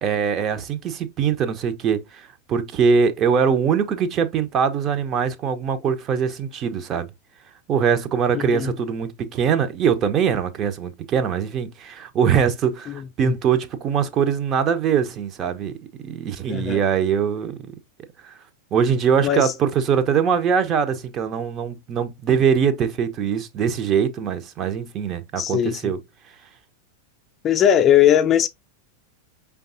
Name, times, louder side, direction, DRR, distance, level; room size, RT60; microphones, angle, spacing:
voice 1, 0.0-7.1 7.7-15.8 16.0-17.7 18.2-18.3 18.7-26.0, right 7 dB, 30° right, 0.6 m, -22 dB
voice 2, 8.3-8.7 12.9-13.4 16.5-16.8 19.2-19.5 25.4-25.9 27.4-28.5, left 10 dB, 25° left, 0.5 m, -19 dB
5.2 x 3.5 x 2.5 m
figure-of-eight pair, 90°, 0 cm